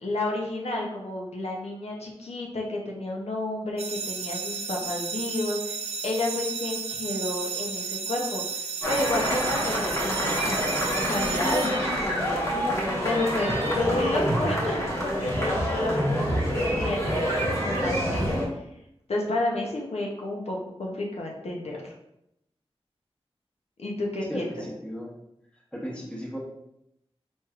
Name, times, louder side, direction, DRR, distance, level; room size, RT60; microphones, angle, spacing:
voice 1, 0.0-11.9 13.0-18.3 19.1-21.9 23.8-24.7, left 2 dB, 80° left, -1 dB, 0.7 m, -31 dB
sound 1, 3.8-12.4, right 5 dB, 75° right, 0.4 m, -33 dB
sound 2, 8.8-18.5, equal, 30° left, 1.1 m, -27 dB
voice 2, 24.3-25.1 25.7-26.4, equal, 10° left, -3 dB, 0.9 m, -35 dB
4.4 x 3.1 x 2.3 m, 0.81 s
wide cardioid pair, 80°, 11 cm